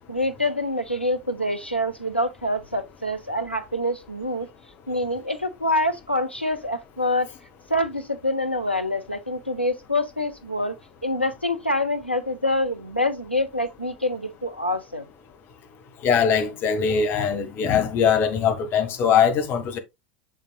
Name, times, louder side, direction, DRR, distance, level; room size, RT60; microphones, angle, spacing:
voice 1, 0.1-4.5 4.9-7.3 7.7-10.8 11.0-15.1, left 1 dB, 90° left, 0.9 m, -26 dB
voice 2, 16.0-19.8, left 7 dB, 35° left, 1.5 m, -21 dB
6.5 x 6.4 x 2.3 m
figure-of-eight pair, 80°, 6 cm